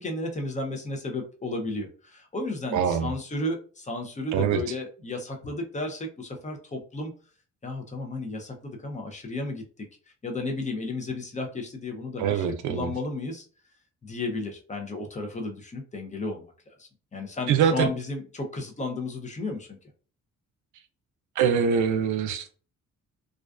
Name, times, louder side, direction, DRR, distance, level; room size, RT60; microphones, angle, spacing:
voice 1, 0.0-7.1 7.6-9.6 10.2-13.5 14.0-16.4 16.8-19.8, left 2 dB, 25° left, 3 dB, 0.6 m, -33 dB
voice 2, 2.7-3.1 4.3-4.6 12.2-12.9 17.5-17.9 21.4-22.5, right 7 dB, 75° right, 9 dB, 0.5 m, -24 dB
2.4 x 2.2 x 2.3 m, 0.39 s
cardioid pair, 90°, 30 cm